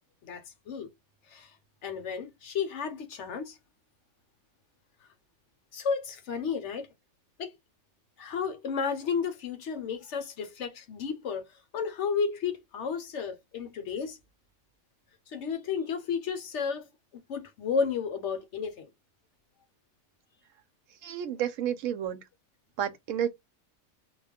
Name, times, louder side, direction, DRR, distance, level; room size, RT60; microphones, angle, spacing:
voice 1, 0.2-0.9 1.3-1.5 1.8-3.6 5.7-6.9 7.4-7.5 8.2-11.4 11.7-14.2 15.3-16.9 17.3-18.9, left 6 dB, 65° left, 0.9 m, -32 dB
voice 2, 21.0-22.2 22.8-23.3, right 10 dB, 70° right, 0.9 m, -30 dB
2.3 x 2.2 x 3.4 m
omnidirectional pair, 1.4 m